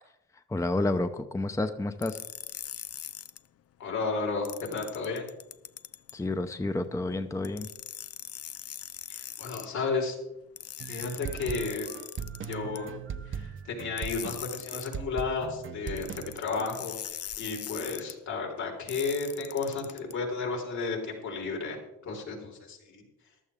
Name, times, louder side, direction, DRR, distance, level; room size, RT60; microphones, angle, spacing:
voice 1, 0.5-2.2 6.1-7.7, left 2 dB, 10° left, 8 dB, 0.7 m, -30 dB
sound 1, 2.0-3.4 4.4-6.1 7.4-9.7 10.6-12.8 14.0-15.0 15.9-18.1 18.9-20.1, left 10 dB, 55° left, 0.7 m, -41 dB
voice 2, 3.8-4.5 4.7-5.3 9.1-10.2 10.9-11.9 12.5-12.9 13.3-17.0 17.4-23.0, left 4 dB, 70° left, 0 dB, 4.3 m, -33 dB
sound 2, 10.8-16.7, right 8 dB, 40° right, 0.8 m, -39 dB
15.0 x 12.0 x 3.7 m, 0.93 s
cardioid pair, 90°, 30 cm